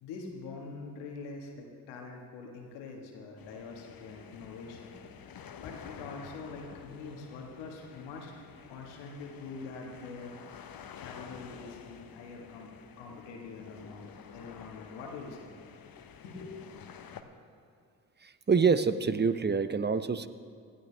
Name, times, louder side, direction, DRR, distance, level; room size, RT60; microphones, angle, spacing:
voice 1, 0.0-4.9 5.3-8.4 8.7-10.3 11.0-15.5 16.2-16.6, left 4 dB, 90° left, 1 dB, 1.6 m, -44 dB
sound 1, 3.4-17.2, left 7 dB, 55° left, 1.0 m, -50 dB
voice 2, 18.2-20.3, right 5 dB, 25° right, 12 dB, 0.8 m, -26 dB
18.5 x 12.5 x 3.4 m, 2.2 s
hypercardioid pair, 40°, 41 cm